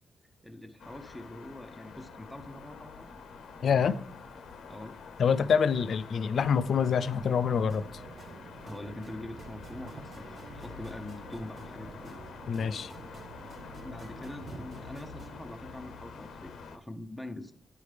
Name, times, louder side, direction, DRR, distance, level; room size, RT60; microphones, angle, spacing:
voice 1, 0.4-3.1 4.7-5.0 8.6-12.2 13.8-17.5, left 1 dB, ahead, 4 dB, 0.6 m, -44 dB
sound 1, 0.8-16.8, left 5 dB, 90° left, 0.8 m, -47 dB
voice 2, 3.6-4.0 5.2-7.8 12.5-12.9, left 6 dB, 65° left, 14 dB, 0.4 m, -26 dB
sound 2, 7.0-14.9, right 5 dB, 70° right, 0.6 m, -50 dB
sound 3, 7.7-15.4, right 3 dB, 55° right, 1.3 m, -53 dB
9.6 x 5.0 x 3.3 m, 0.63 s
cardioid pair, 115°, 0 cm